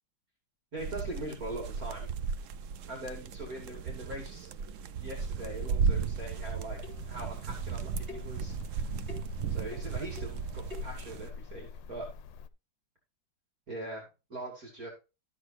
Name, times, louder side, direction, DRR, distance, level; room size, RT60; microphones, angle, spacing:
voice 1, 0.7-2.1 2.9-4.5 5.0-6.8 7.0-8.9 9.5-12.1 13.7-14.9, right 1 dB, 50° right, -1 dB, 3.2 m, -41 dB
sound 1, 0.8-11.3, right 6 dB, 80° right, 0.7 m, -35 dB
sound 2, 4.5-5.4 6.3-6.6 6.8-7.2 8.1-8.4 9.1-9.4 9.7-10.4 10.7-11.0, left 4 dB, 30° right, 3.2 m, -49 dB
sound 3, 6.7-12.5, left 5 dB, 85° left, 1.4 m, -45 dB
13.0 x 8.2 x 2.9 m, 0.29 s
omnidirectional pair, 2.0 m